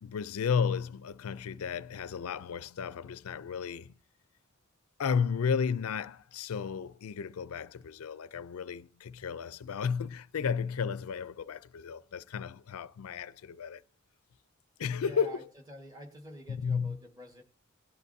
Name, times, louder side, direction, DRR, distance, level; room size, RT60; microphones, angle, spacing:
voice 1, 0.0-4.0 5.0-13.8 14.8-15.5 16.5-17.0, left 6 dB, 85° left, 0.4 m, -33 dB
voice 2, 15.0-15.4 15.7-17.4, equal, 20° right, 1.6 m, -47 dB
17.5 x 10.5 x 2.7 m
head